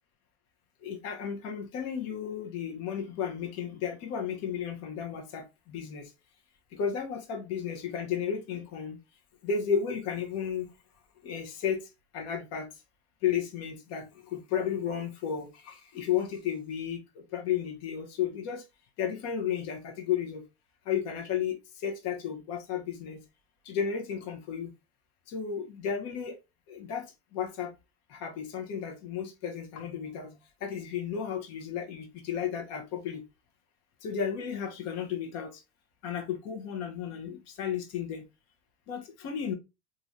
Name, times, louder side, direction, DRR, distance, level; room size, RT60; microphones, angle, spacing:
voice 1, 0.8-6.1 6.8-9.0 9.4-10.7 11.2-11.8 12.1-12.7 13.2-14.0 14.3-17.0 17.3-18.6 19.0-20.4 20.9-21.6 21.8-23.2 23.7-24.7 25.3-26.4 26.7-27.1 27.3-27.7 28.1-30.3 30.6-33.2 34.0-35.5 36.0-38.2 38.9-39.5, left 8 dB, 55° left, 0.9 m, -33 dB
3.2 x 2.6 x 2.5 m
supercardioid pair, 110°, 30 cm